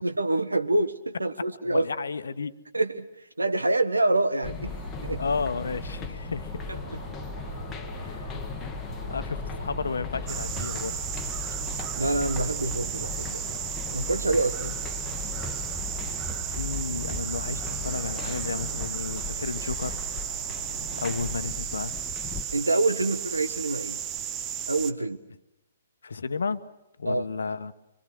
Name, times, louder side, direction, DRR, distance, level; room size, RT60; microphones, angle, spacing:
voice 1, 0.0-1.9 2.7-3.1 3.4-4.7 5.0-5.2 6.7-7.0 12.0-13.4 13.9-14.8 20.7-20.8 22.5-24.0 24.7-25.2 27.0-27.2, right 2 dB, 80° right, 1.4 m, -26 dB
voice 2, 1.6-2.5 5.2-6.6 8.0-8.4 9.1-11.0 16.4-20.0 21.0-21.9 26.0-26.6 27.0-27.7, left 4 dB, 65° left, 1.1 m, -32 dB
sound 1, 4.4-22.5, left 4 dB, 15° left, 1.3 m, -38 dB
sound 2, 4.6-21.5, equal, 55° right, 5.6 m, -42 dB
sound 3, 10.3-24.9, right 9 dB, 20° right, 0.8 m, -34 dB
25.0 x 24.5 x 6.3 m
figure-of-eight pair, 125°, 0 cm